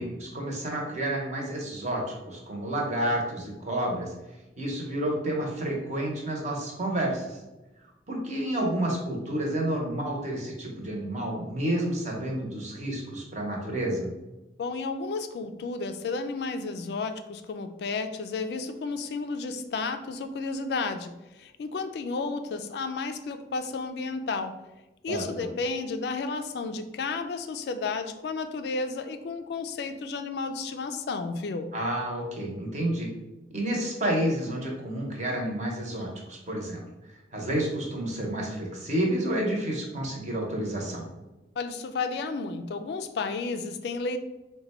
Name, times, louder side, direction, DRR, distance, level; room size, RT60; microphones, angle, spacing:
voice 1, 0.0-4.1 4.6-7.4 8.1-14.1 25.1-25.2 31.7-33.1 33.5-36.8 37.3-41.1, right 1 dB, 40° right, -1 dB, 0.9 m, -30 dB
voice 2, 14.6-21.1 21.4-24.6 25.0-31.7 41.6-44.2, left 4 dB, 60° left, 8 dB, 0.3 m, -32 dB
4.0 x 2.2 x 4.2 m, 1.0 s
head